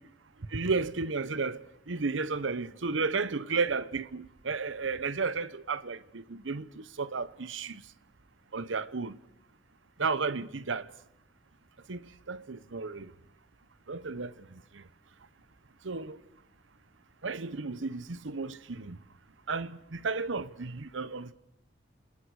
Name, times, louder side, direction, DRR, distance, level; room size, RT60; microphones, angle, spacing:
voice 1, 0.5-1.6 1.9-7.8 8.5-9.2 10.0-10.9 11.9-13.1 13.9-14.5 14.7-14.8 15.8-16.2 17.2-19.0 19.5-21.3, right 4 dB, 85° right, 0.9 m, -33 dB
28.5 x 26.5 x 4.9 m
head